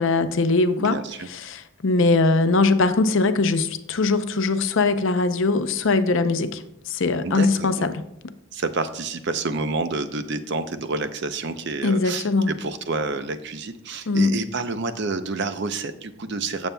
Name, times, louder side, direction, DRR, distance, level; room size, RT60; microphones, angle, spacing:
voice 1, 0.0-1.0 1.3-8.0 11.8-12.5 14.1-14.4, left 3 dB, 60° left, 0.6 m, -21 dB
voice 2, 0.8-1.3 7.2-7.9 8.5-16.7, right 3 dB, 50° right, 0.6 m, -29 dB
16.0 x 7.1 x 2.2 m
head